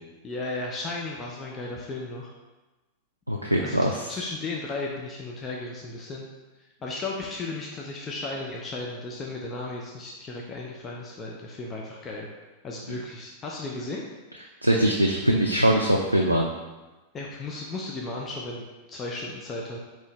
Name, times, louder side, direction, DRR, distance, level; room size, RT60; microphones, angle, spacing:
voice 1, 0.2-2.3 3.6-6.3 6.8-12.3 12.6-14.0 17.1-19.8, left 2 dB, 25° left, -2 dB, 0.5 m, -35 dB
voice 2, 3.3-3.9 12.9-13.0 14.6-16.5, right 1 dB, 85° right, 0 dB, 0.3 m, -22 dB
4.4 x 3.0 x 3.3 m, 1.2 s
figure-of-eight pair, 90°, 0 cm